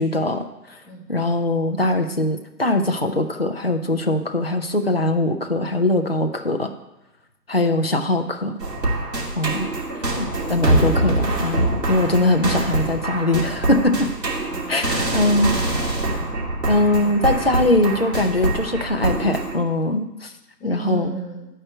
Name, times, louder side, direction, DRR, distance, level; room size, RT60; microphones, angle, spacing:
voice 1, 0.0-0.8 1.1-6.7 7.5-8.6 9.4-9.7 10.2-14.1 14.7-15.5 16.7-20.3 20.6-21.1, left 1 dB, 40° left, 5 dB, 0.5 m, -21 dB
sound 1, 8.6-19.6, right 1 dB, 90° right, 2.9 m, -24 dB
voice 2, 12.0-12.4 14.5-16.4 20.6-21.5, right 1 dB, 10° left, -12 dB, 2.3 m, -36 dB
11.0 x 4.5 x 7.6 m, 0.95 s
hypercardioid pair, 175°, 48 cm